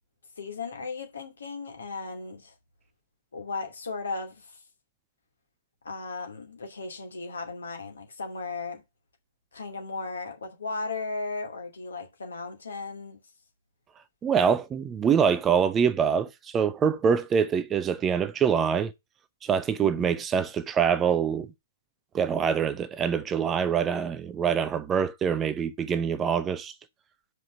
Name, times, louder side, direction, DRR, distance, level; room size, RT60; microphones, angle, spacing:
voice 1, 0.4-2.5 3.3-4.6 5.8-8.8 9.5-13.2 19.8-20.1, left 3 dB, 65° left, 2.5 m, -36 dB
voice 2, 14.2-18.9 19.4-21.5 22.1-26.7, right 7 dB, 15° right, 0.6 m, -25 dB
6.7 x 5.0 x 5.9 m
figure-of-eight pair, 115°, 0 cm